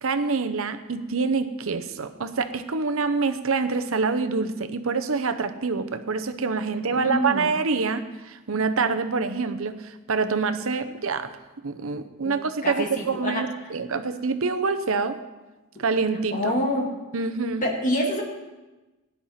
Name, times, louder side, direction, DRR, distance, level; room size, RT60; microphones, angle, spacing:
voice 1, 0.0-11.3 11.6-15.2 15.8-16.5 17.1-17.7, right 4 dB, 70° right, 9 dB, 0.8 m, -26 dB
voice 2, 7.0-7.5 12.2-12.4 12.6-13.4 16.3-16.9 17.6-18.2, equal, 35° left, 0 dB, 2.2 m, -26 dB
17.5 x 10.5 x 4.3 m, 1.1 s
head